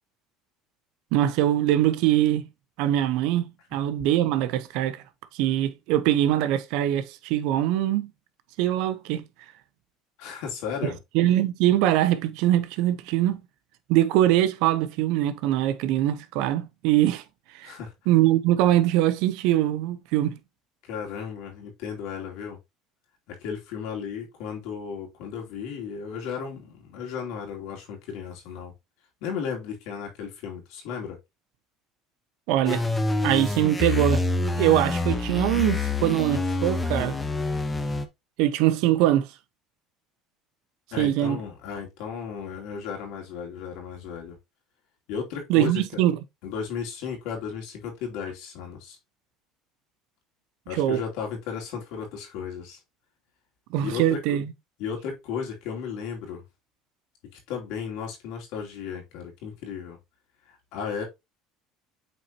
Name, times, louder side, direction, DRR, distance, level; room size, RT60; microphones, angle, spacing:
voice 1, 1.1-2.5 2.8-5.0 5.3-8.1 8.6-9.2 11.1-13.4 13.9-17.2 17.5-17.7 18.1-20.4 32.5-32.9 33.2-34.2 34.6-37.2 38.4-39.3 41.0-41.4 45.5-46.2 50.7-51.0 53.7-54.5, right 13 dB, 75° right, 0.8 m, -22 dB
voice 2, 10.2-11.0 17.6-17.9 20.8-22.6 23.3-28.7 29.2-31.2 40.9-44.4 45.1-45.8 46.4-49.0 50.7-52.8 53.7-54.4 54.8-56.4 57.5-60.0 60.5-61.0, left 7 dB, 75° left, 2.8 m, -34 dB
sound 1, 32.6-38.0, left 3 dB, 15° left, 1.0 m, -27 dB
8.2 x 4.4 x 2.9 m
supercardioid pair, 110°, 0 cm